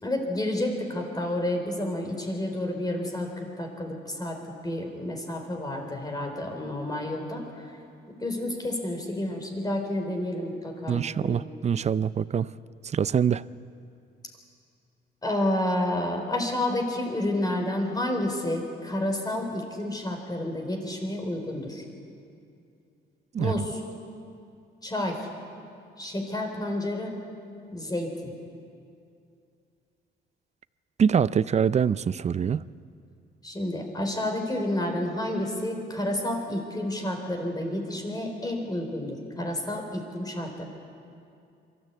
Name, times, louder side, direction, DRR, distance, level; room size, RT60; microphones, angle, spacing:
voice 1, 0.0-4.4 4.6-7.7 8.1-11.4 15.2-21.8 23.4-23.8 24.8-25.3 26.0-27.1 27.7-28.3 33.4-40.6, left 1 dB, 20° left, 2 dB, 4.1 m, -30 dB
voice 2, 10.9-12.5 12.8-13.4 23.3-23.5 31.0-32.6, right 7 dB, 35° right, 18 dB, 0.5 m, -24 dB
23.5 x 14.0 x 8.3 m, 2.5 s
cardioid pair, 90°, 20 cm